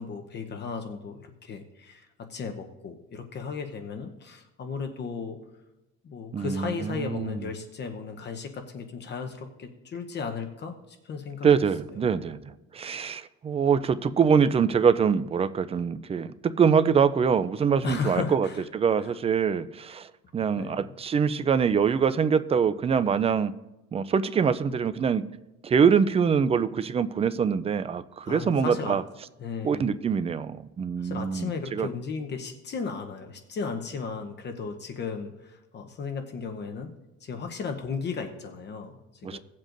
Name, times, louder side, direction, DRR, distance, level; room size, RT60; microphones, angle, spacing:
voice 1, 0.0-5.4 6.0-11.5 17.8-18.6 19.0-19.1 20.6-20.9 28.3-29.0 29.4-29.9 31.0-36.9 37.2-39.4, left 5 dB, 35° left, 5 dB, 0.9 m, -35 dB
voice 2, 6.3-7.5 11.4-18.5 18.7-23.5 23.9-25.2 25.6-29.0 29.6-31.9 39.2-39.4, right 6 dB, 20° right, 13 dB, 0.3 m, -24 dB
18.0 x 7.4 x 2.6 m, 1.0 s
cardioid pair, 125°, 29 cm